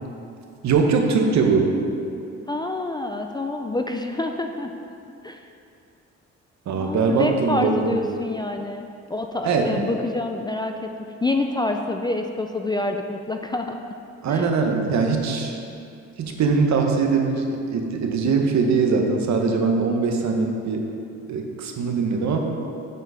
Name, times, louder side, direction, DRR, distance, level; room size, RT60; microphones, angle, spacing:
voice 1, 0.6-1.7 6.7-8.0 9.4-9.8 14.2-15.6 16.2-20.9 21.3-22.4, right 4 dB, 65° right, 3 dB, 0.9 m, -21 dB
voice 2, 2.5-4.7 5.2-5.4 6.8-10.9 11.2-13.8 14.3-14.5, left 2 dB, 15° left, 4 dB, 0.3 m, -27 dB
7.4 x 3.9 x 5.5 m, 2.5 s
cardioid pair, 90°, 30 cm